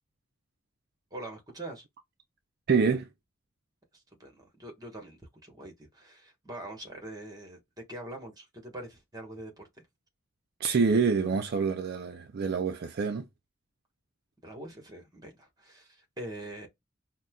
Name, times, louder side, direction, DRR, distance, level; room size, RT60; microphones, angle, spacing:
voice 1, 1.1-1.8 3.9-7.6 7.9-9.7 14.4-16.7, right 1 dB, 20° right, 1.2 m, -43 dB
voice 2, 2.7-3.1 10.6-13.2, right 5 dB, 55° right, 0.4 m, -26 dB
5.3 x 2.2 x 2.3 m
head